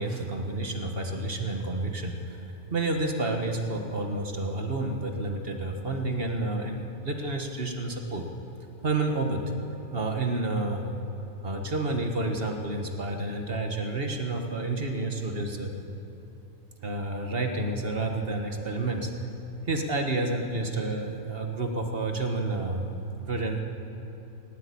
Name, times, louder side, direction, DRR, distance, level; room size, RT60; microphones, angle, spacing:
voice 1, 0.0-2.4 2.7-8.2 8.8-9.4 9.9-10.9 11.4-15.7 16.8-19.1 19.7-22.9 23.3-23.6, right 2 dB, 40° right, 4 dB, 1.7 m, -30 dB
19.0 x 17.0 x 8.5 m, 3.0 s
omnidirectional pair, 1.6 m